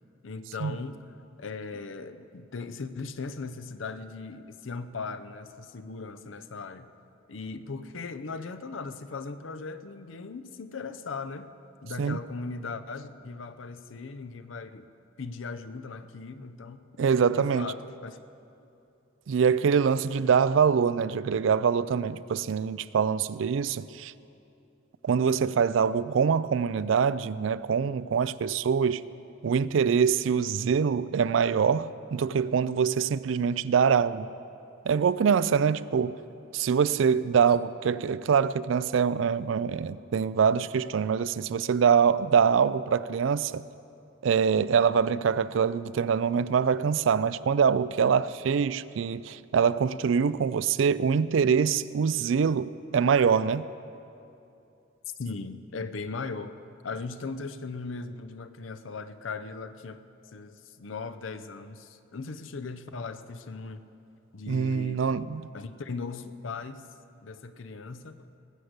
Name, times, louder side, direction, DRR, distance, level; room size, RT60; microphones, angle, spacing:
voice 1, 0.2-1.0 1.4-6.9 7.3-11.5 11.8-14.9 15.2-16.9 17.3-18.2 55.2-56.6 56.8-60.0 60.3-63.8 64.3-65.0 65.5-66.8 67.2-68.3, left 4 dB, 75° left, 0.6 m, -38 dB
voice 2, 17.0-17.7 19.3-24.1 25.0-29.0 29.4-34.3 34.9-36.1 36.5-43.6 44.2-53.7 64.5-65.4, right 6 dB, 70° right, 0.4 m, -24 dB
19.5 x 6.6 x 8.0 m
head